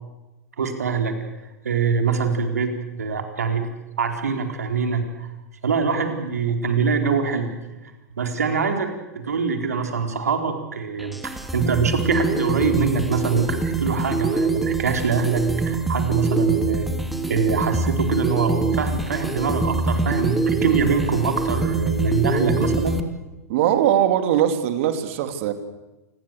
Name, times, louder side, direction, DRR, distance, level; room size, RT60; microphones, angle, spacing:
voice 1, 0.6-1.1 1.6-3.7 4.0-5.3 5.6-7.5 7.8-7.9 8.2-16.9 17.3-23.0, right 5 dB, 75° right, 5 dB, 4.3 m, -24 dB
sound 1, 11.0-23.0, right 3 dB, ahead, 2.7 m, -24 dB
voice 2, 23.5-25.5, right 10 dB, 55° right, 9 dB, 3.0 m, -20 dB
28.0 x 20.5 x 8.1 m, 1.1 s
figure-of-eight pair, 100°, 9 cm